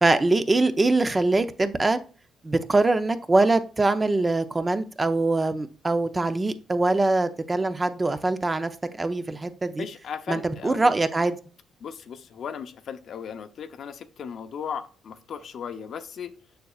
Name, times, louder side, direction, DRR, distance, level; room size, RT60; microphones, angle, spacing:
voice 1, 0.0-2.0 2.4-8.7 9.0-9.8 10.3-11.4, right 2 dB, 25° right, 10 dB, 0.7 m, -23 dB
voice 2, 9.8-10.9 11.8-16.3, left 7 dB, 60° left, 9 dB, 0.7 m, -36 dB
6.7 x 6.5 x 2.4 m, 0.38 s
cardioid pair, 90°, 0 cm